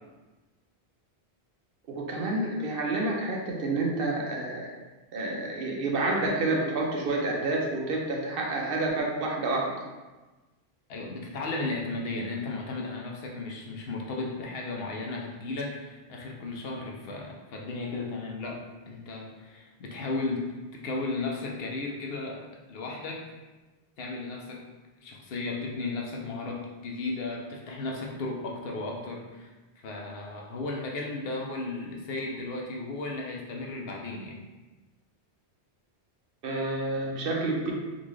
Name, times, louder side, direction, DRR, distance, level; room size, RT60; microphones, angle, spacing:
voice 1, 1.9-4.7 5.1-9.7 36.4-37.7, right 2 dB, 60° right, -1 dB, 0.7 m, -29 dB
voice 2, 10.9-20.4 20.7-23.2 24.0-24.6 25.0-29.5 29.8-34.4, left 3 dB, 70° left, 0 dB, 0.8 m, -35 dB
3.7 x 2.3 x 3.1 m, 1.2 s
omnidirectional pair, 1.1 m